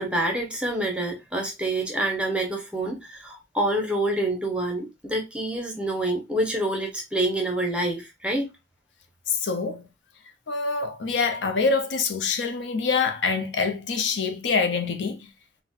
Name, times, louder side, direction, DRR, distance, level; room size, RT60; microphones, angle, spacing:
voice 1, 0.0-8.5, right 1 dB, 5° right, 0.7 m, -27 dB
voice 2, 9.3-9.9 10.5-15.3, left 4 dB, 80° left, 0.5 m, -25 dB
4.1 x 2.1 x 2.3 m
head